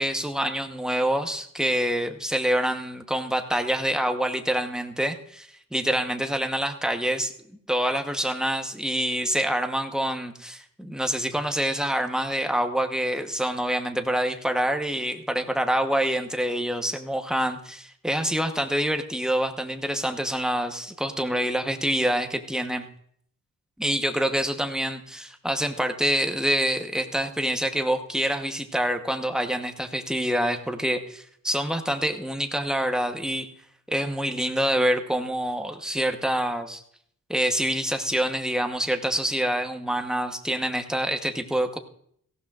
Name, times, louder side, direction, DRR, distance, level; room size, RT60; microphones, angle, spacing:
voice 1, 0.0-7.3 7.7-22.9 23.8-33.5 33.9-36.8 37.3-41.8, equal, ahead, 5 dB, 1.0 m, -26 dB
18.0 x 15.5 x 2.4 m, 0.66 s
wide cardioid pair, 120°, 34 cm